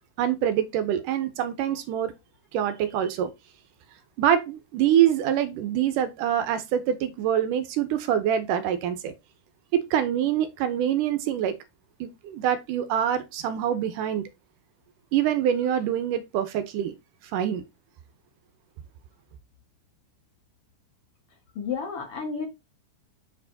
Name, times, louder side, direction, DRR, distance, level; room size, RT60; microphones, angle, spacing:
voice 1, 0.2-2.1 2.5-3.3 4.2-9.1 9.7-11.5 12.0-14.2 15.1-16.9 17.3-17.6, right 10 dB, 80° right, 2.4 m, -25 dB
voice 2, 21.6-22.5, left 6 dB, 50° left, 2.4 m, -31 dB
7.9 x 4.6 x 4.0 m
omnidirectional pair, 3.7 m